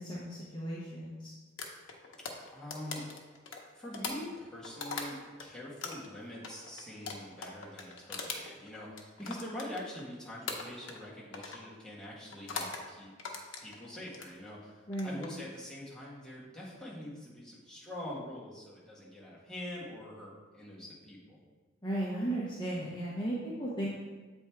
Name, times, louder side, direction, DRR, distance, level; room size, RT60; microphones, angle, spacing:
voice 1, 0.0-1.3 14.9-15.2 21.8-23.9, right 1 dB, 25° left, -7 dB, 0.9 m, -35 dB
sound 1, 1.6-5.5 5.8-10.1 10.5-11.1 11.3-11.7 12.3-12.8 13.2-14.3 14.8-15.3, left 4 dB, 85° left, 0.9 m, -41 dB
voice 2, 2.5-3.0 3.7-13.1 13.6-21.4, left 1 dB, 5° left, -8 dB, 1.5 m, -44 dB
7.9 x 3.5 x 4.5 m, 1.3 s
head